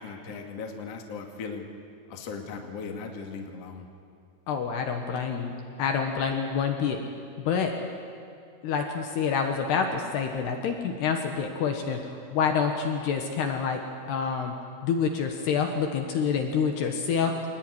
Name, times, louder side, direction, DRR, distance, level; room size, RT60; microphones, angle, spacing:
voice 1, 0.0-1.6 2.1-3.9, left 5 dB, 40° left, 2 dB, 2.5 m, -38 dB
voice 2, 4.5-5.5 5.8-7.0 7.4-7.7 8.6-13.8 14.1-14.5 14.8-17.3, left 6 dB, 65° left, 4 dB, 3.3 m, -27 dB
26.0 x 20.0 x 9.7 m, 2.4 s
omnidirectional pair, 5.6 m